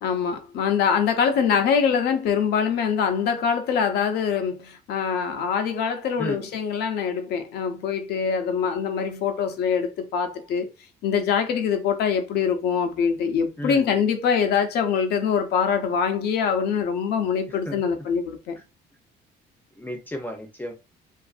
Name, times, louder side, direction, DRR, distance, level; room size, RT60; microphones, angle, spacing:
voice 1, 0.0-10.7 11.0-18.6, left 6 dB, 75° left, 0.6 m, -24 dB
voice 2, 13.6-13.9 17.7-17.8 19.8-20.7, equal, 10° left, 0.6 m, -33 dB
2.5 x 2.5 x 2.4 m
cardioid pair, 110°, 17 cm